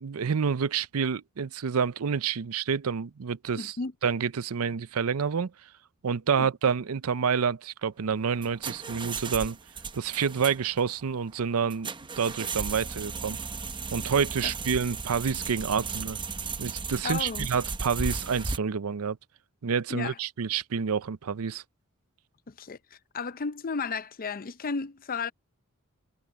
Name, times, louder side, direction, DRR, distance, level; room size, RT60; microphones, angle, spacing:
voice 1, 0.0-3.7 4.0-5.5 6.0-9.6 9.9-11.9 12.2-13.4 13.9-16.2 16.6-19.2 19.6-21.6, right 6 dB, 90° right, 0.6 m, -28 dB
voice 2, 3.6-3.9 6.4-6.5 14.4-14.5 17.0-17.5 19.9-20.2 22.5-25.3, left 5 dB, 40° left, 0.6 m, -34 dB
sound 1, 8.1-18.6, right 4 dB, 20° right, 0.8 m, -36 dB
head